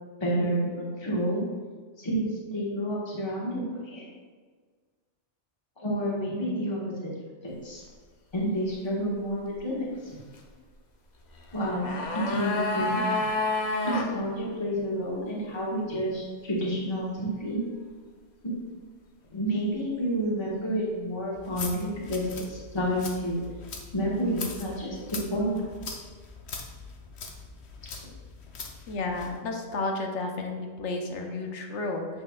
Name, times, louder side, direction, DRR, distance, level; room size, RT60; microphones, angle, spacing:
voice 1, 0.2-1.4 2.0-3.6 3.9-4.1 5.8-7.1 7.4-7.8 8.3-9.8 11.5-13.0 13.8-17.6 19.3-22.2 22.5-23.4 23.9-25.6, equal, 25° left, -5 dB, 1.3 m, -29 dB
sound 1, 11.5-14.1 14.4-14.5, left 2 dB, 45° left, 0.7 m, -28 dB
sound 2, 21.3-29.4, left 4 dB, 70° left, 1.0 m, -41 dB
voice 2, 28.9-32.1, left 2 dB, 85° left, 3 dB, 1.1 m, -32 dB
8.3 x 5.5 x 2.3 m, 1.5 s
omnidirectional pair, 1.2 m